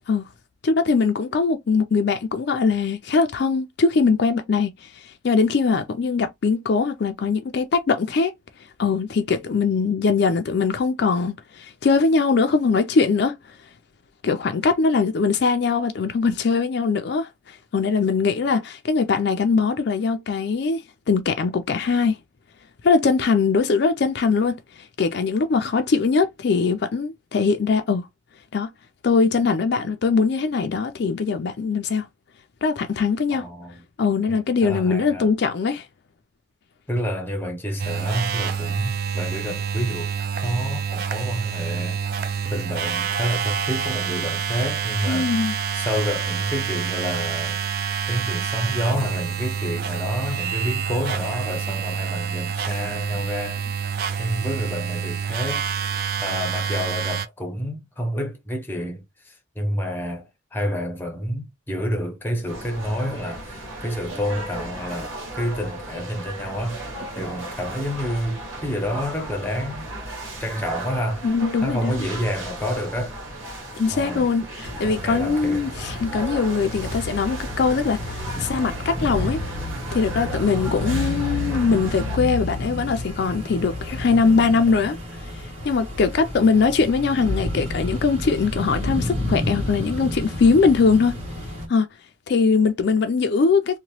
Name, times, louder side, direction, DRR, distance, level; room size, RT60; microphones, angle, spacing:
voice 1, 0.6-8.3 8.8-13.4 14.2-22.2 22.8-24.6 25.0-28.0 28.5-28.7 29.0-32.1 32.6-33.5 34.0-35.9 45.1-45.6 71.2-72.1 73.8-79.4 79.9-85.0 85.4-91.2 91.7-91.9 92.3-93.8, left 4 dB, 55° left, 0.4 m, -21 dB
voice 2, 33.3-33.8 34.3-35.3 36.9-40.1 40.4-42.3 42.5-45.3 45.7-47.6 48.1-53.7 54.2-55.6 56.2-66.8 67.2-69.9 70.4-71.3 71.6-73.2 73.9-74.3 74.8-75.7 78.3-78.5, equal, 10° left, 0.6 m, -29 dB
sound 1, 37.8-57.3, right 7 dB, 50° right, 0.3 m, -27 dB
sound 2, 62.5-82.2, right 2 dB, 80° right, 1.3 m, -35 dB
sound 3, 74.6-91.7, left 1 dB, 30° right, 1.3 m, -30 dB
2.9 x 2.1 x 3.0 m
head